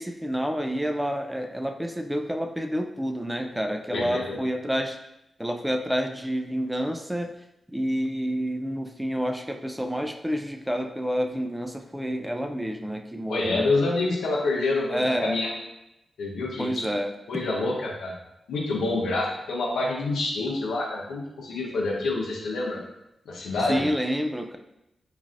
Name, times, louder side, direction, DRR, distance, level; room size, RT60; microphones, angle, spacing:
voice 1, 0.0-5.0 5.4-7.3 7.7-13.7 14.9-15.3 16.6-17.1 23.7-24.6, equal, 5° right, 5 dB, 0.3 m, -28 dB
voice 2, 3.9-4.4 13.3-15.5 16.2-16.9 17.3-18.2 18.5-22.8 23.3-23.8, left 2 dB, 90° left, -2 dB, 0.6 m, -27 dB
3.1 x 2.5 x 2.4 m, 0.87 s
cardioid pair, 45°, 0 cm